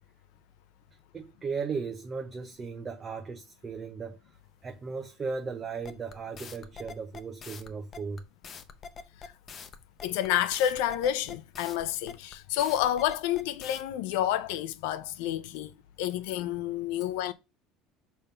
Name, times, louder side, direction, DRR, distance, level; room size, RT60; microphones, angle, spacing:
voice 1, 1.1-4.2 4.6-8.2, right 5 dB, 25° right, 0.6 m, -36 dB
sound 1, 5.8-13.8, left 5 dB, 30° left, 0.7 m, -44 dB
voice 2, 10.0-15.7 16.0-17.3, left 12 dB, 80° left, 0.6 m, -29 dB
5.6 x 3.7 x 5.5 m
cardioid pair, 145°, 0 cm